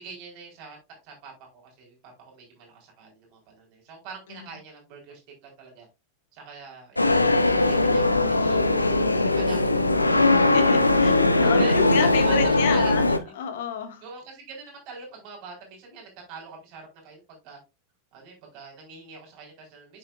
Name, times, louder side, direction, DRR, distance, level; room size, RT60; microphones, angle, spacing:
voice 1, 0.0-5.9 6.3-8.9 9.2-9.8 11.4-12.9 13.2-13.3 14.0-17.6 18.1-20.0, right 4 dB, 40° right, 4.4 m, -44 dB
sound 1, 7.0-13.2, left 2 dB, 85° left, 0.8 m, -20 dB
voice 2, 10.5-13.1 13.4-14.0, left 7 dB, 55° left, 1.8 m, -29 dB
8.7 x 6.5 x 2.5 m
figure-of-eight pair, 90°, 0 cm